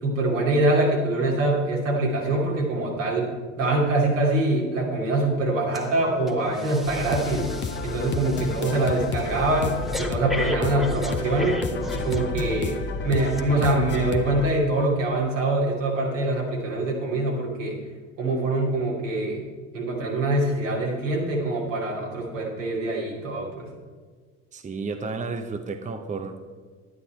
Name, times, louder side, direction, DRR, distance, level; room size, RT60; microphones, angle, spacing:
voice 1, 0.0-3.3 3.6-7.5 7.8-11.6 11.9-12.8 13.0-17.8 18.2-19.4 19.7-23.7, right 2 dB, 80° right, -3 dB, 2.8 m, -24 dB
Breathing, 5.7-5.9 6.3-12.7 13.3-13.4, left 1 dB, ahead, 1.3 m, -35 dB
sound 1, 6.8-14.5, left 4 dB, 30° left, 1.0 m, -31 dB
voice 2, 24.5-26.6, right 4 dB, 20° right, 7 dB, 1.0 m, -32 dB
11.5 x 9.6 x 4.4 m, 1.5 s
figure-of-eight pair, 60°, 38 cm